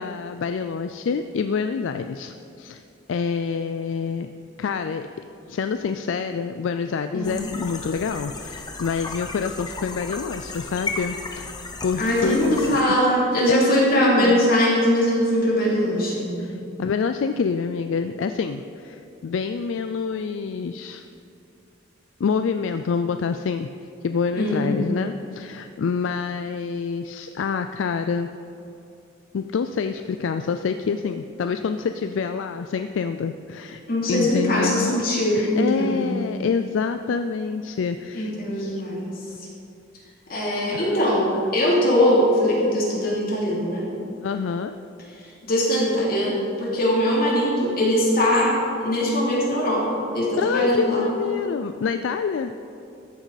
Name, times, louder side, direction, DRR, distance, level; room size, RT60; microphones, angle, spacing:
voice 1, 0.0-2.8 3.1-4.3 4.6-5.1 5.5-11.5 11.8-12.8 13.5-14.4 16.4-21.0 22.2-23.7 24.0-28.3 29.3-33.8 34.1-34.9 35.3-38.8 40.7-41.0 44.2-44.8 50.4-52.5, left 5 dB, 75° left, 8 dB, 0.4 m, -27 dB
sound 1, 7.2-12.8, left 3 dB, 20° left, 0.8 m, -34 dB
voice 2, 12.0-16.5 24.4-24.7 33.9-36.1 38.1-39.1 40.3-41.3 41.5-43.9 45.5-48.5 48.8-51.0, equal, 50° left, -5 dB, 2.9 m, -21 dB
13.5 x 8.2 x 4.0 m, 2.7 s
head